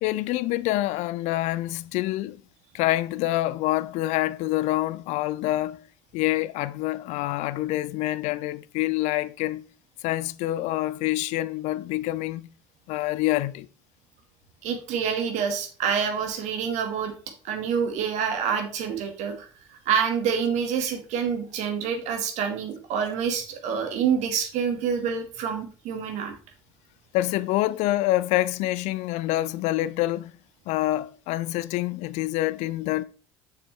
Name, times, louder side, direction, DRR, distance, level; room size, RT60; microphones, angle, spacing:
voice 1, 0.0-2.4 2.7-5.8 6.1-9.6 10.0-12.5 12.9-13.7 27.1-30.3 30.7-33.0, left 16 dB, 55° left, 0.4 m, -26 dB
voice 2, 14.6-17.1 17.4-26.3, right 7 dB, 55° right, 1.5 m, -27 dB
6.9 x 5.7 x 3.2 m
figure-of-eight pair, 65°, 14 cm